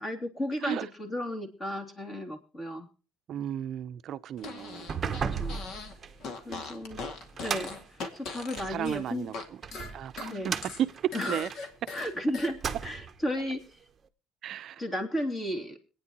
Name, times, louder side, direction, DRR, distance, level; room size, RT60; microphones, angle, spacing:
voice 1, 0.0-2.9 5.3-5.7 6.4-7.0 7.4-7.8 8.1-9.3 10.3-10.5 11.1-11.5 11.9-13.7 14.8-15.8, equal, 20° left, 2.8 m, -34 dB
voice 2, 3.3-5.0 8.7-9.3 9.9-10.9 11.3-11.5 14.4-14.8, right 10 dB, 45° right, 0.7 m, -34 dB
Fart, 4.4-5.9 6.2-9.4 9.7-12.5, left 4 dB, 50° left, 2.2 m, -40 dB
sound 1, 4.7-8.8 9.4-12.1 12.5-13.2, right 6 dB, 25° right, 1.0 m, -36 dB
26.0 x 9.5 x 3.0 m
cardioid pair, 145°, 0 cm